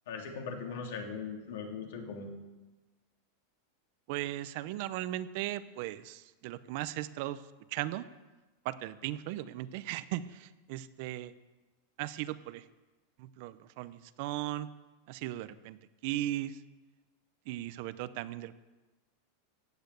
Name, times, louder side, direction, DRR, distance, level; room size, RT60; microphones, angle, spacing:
voice 1, 0.1-2.3, left 5 dB, 75° left, 2 dB, 3.1 m, -39 dB
voice 2, 4.1-7.4 7.7-8.1 8.6-11.3 12.0-12.6 13.2-14.7 15.1-15.8 16.0-16.6 17.5-18.5, right 14 dB, 45° right, 14 dB, 0.6 m, -37 dB
16.0 x 8.8 x 8.3 m, 1.2 s
supercardioid pair, 175°, 0 cm